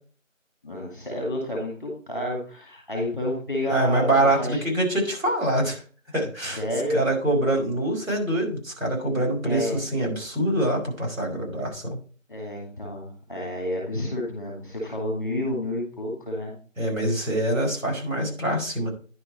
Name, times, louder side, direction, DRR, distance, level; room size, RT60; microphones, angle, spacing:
voice 1, 0.6-4.6 6.4-7.0 9.4-9.8 12.3-16.5, left 1 dB, 15° left, -2 dB, 1.9 m, -30 dB
voice 2, 3.7-5.8 6.1-6.6 6.9-12.0 16.8-18.9, right 1 dB, 85° right, -1 dB, 4.8 m, -24 dB
10.0 x 4.6 x 4.2 m, 0.39 s
figure-of-eight pair, 180°, 40 cm